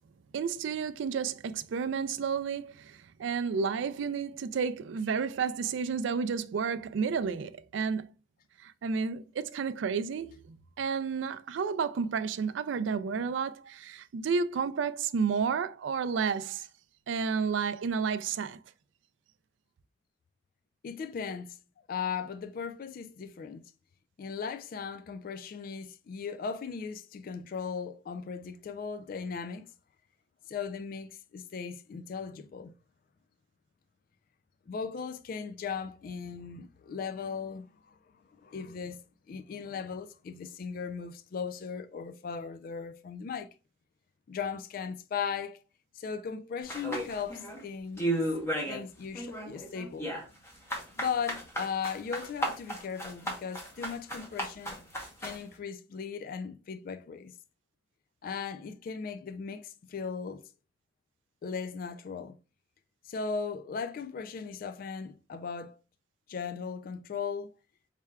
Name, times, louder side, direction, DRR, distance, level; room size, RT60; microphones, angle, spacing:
voice 1, 0.3-8.1 8.6-16.7 17.1-18.6, right 5 dB, 70° right, 0.3 m, -31 dB
voice 2, 20.8-21.6 21.9-23.6 24.2-29.7 30.5-32.7 34.7-43.5 44.3-45.6 45.9-48.1 48.6-50.1 51.0-54.8 55.2-57.3 58.2-60.5 61.4-62.4 63.0-65.8 66.3-67.5, left 6 dB, 50° left, 0.3 m, -37 dB
sound 1, 46.7-47.6 48.0-48.9 49.1-55.4, right 1 dB, 15° left, 0.9 m, -34 dB
4.5 x 3.3 x 2.3 m
head